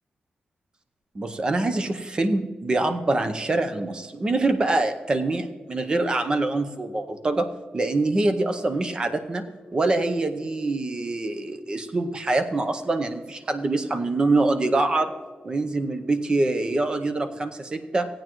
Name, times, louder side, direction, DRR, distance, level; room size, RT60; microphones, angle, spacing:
voice 1, 1.1-9.4 9.7-15.1 15.4-18.1, right 2 dB, 25° right, 8 dB, 0.6 m, -25 dB
17.0 x 8.9 x 3.0 m, 1.4 s
wide cardioid pair, 165°, 3 cm